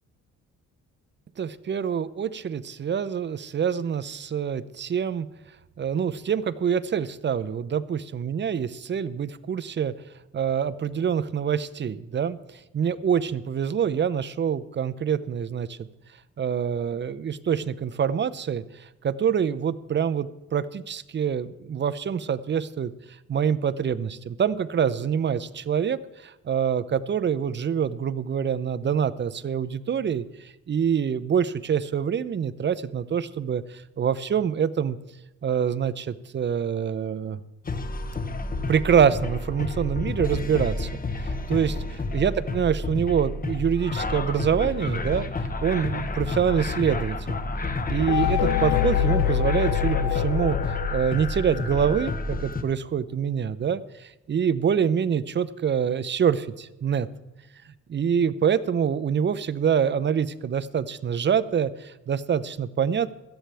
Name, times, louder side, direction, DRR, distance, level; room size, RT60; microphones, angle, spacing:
voice 1, 1.4-5.3 5.8-9.9 10.3-15.8 16.4-35.0 35.4-37.4 38.7-47.4 47.9-57.1 57.9-63.1, right 7 dB, 35° right, 15 dB, 0.7 m, -26 dB
sound 1, 37.7-52.6, left 2 dB, 30° left, 1.2 m, -30 dB
sound 2, 48.1-51.8, left 12 dB, 75° left, 0.6 m, -25 dB
17.0 x 12.5 x 3.4 m, 1.0 s
cardioid pair, 90°, 30 cm